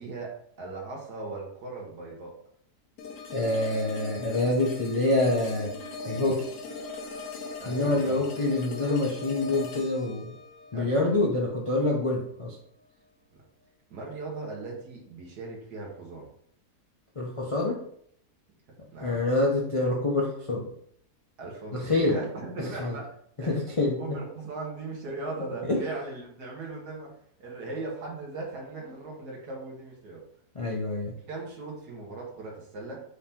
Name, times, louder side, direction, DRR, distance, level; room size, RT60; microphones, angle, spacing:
voice 1, 0.0-2.3 7.6-8.2 10.7-11.2 13.9-16.3 18.9-19.3 21.4-23.1 23.4-27.1 27.4-30.2 31.3-33.0, right 3 dB, 90° right, -3 dB, 1.9 m, -38 dB
sound 1, 3.0-12.0, left 3 dB, 90° left, 1.4 m, -40 dB
voice 2, 3.3-5.7 6.1-6.4 7.7-10.3 10.7-12.6 17.2-17.8 19.0-20.7 21.7-22.1 22.8-23.0 23.4-24.2 25.7-25.8 30.5-31.1, left 2 dB, 60° left, -3 dB, 0.3 m, -26 dB
4.8 x 2.9 x 3.5 m, 0.66 s
omnidirectional pair, 1.7 m